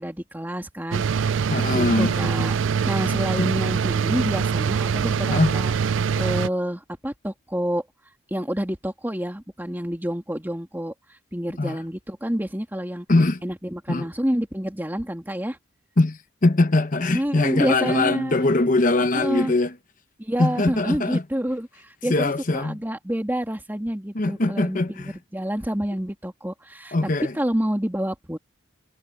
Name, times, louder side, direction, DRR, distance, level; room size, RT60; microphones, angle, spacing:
voice 1, 0.0-2.6 2.9-5.7 6.2-7.8 8.3-10.9 11.3-13.1 13.4-15.6 17.1-18.4 19.0-19.5 20.2-28.4, equal, 10° right, 2.4 m, -28 dB
sound 1, 0.9-6.5, right 6 dB, 70° right, 0.4 m, -23 dB
voice 2, 1.5-2.1 2.4-2.5 3.4-3.5 5.3-5.6 11.6-11.8 13.1-13.4 13.9-14.1 16.0-19.7 20.4-21.2 22.1-22.8 24.1-25.2 26.9-27.3, left 2 dB, 40° left, 0.9 m, -22 dB
head